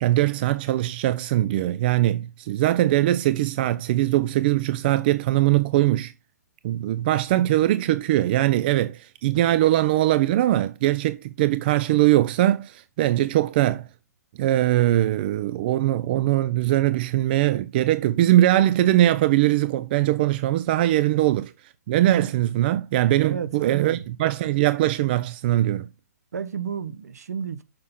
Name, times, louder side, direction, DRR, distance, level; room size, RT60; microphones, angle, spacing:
voice 1, 0.0-6.1 6.6-13.8 14.4-21.5 21.9-25.9, right 14 dB, 35° right, 0.5 m, -21 dB
voice 2, 23.2-24.0 26.3-27.6, right 7 dB, 70° right, 1.1 m, -32 dB
6.6 x 5.5 x 5.4 m
hypercardioid pair, 145°, 9 cm